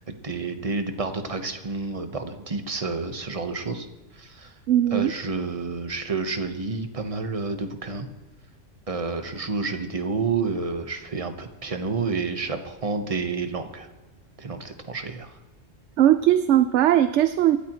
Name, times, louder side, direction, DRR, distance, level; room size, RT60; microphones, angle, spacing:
voice 1, 0.0-3.9 4.1-4.5 4.9-8.1 8.9-13.9 14.4-15.4, right 4 dB, 30° right, 7 dB, 1.2 m, -29 dB
voice 2, 4.7-5.1 16.0-17.6, right 11 dB, 75° right, 12 dB, 0.9 m, -19 dB
25.5 x 13.0 x 3.1 m, 1.2 s
omnidirectional pair, 1.3 m